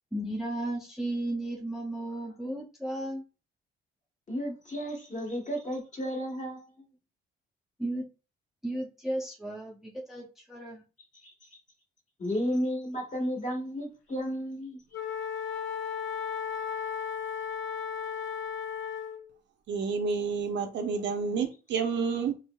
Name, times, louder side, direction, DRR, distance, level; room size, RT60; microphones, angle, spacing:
voice 1, 0.1-3.2 7.8-8.1 8.6-10.8, right 1 dB, ahead, 0.6 m, -34 dB
voice 2, 4.3-6.7 11.2-11.3 12.2-14.8, equal, 35° left, 1.4 m, -33 dB
Wind instrument woodwind instrument, 14.9-19.3, left 7 dB, 80° left, 0.5 m, -35 dB
voice 3, 19.7-22.3, right 5 dB, 65° right, 0.6 m, -29 dB
3.3 x 3.0 x 2.2 m
cardioid pair, 90°, 20 cm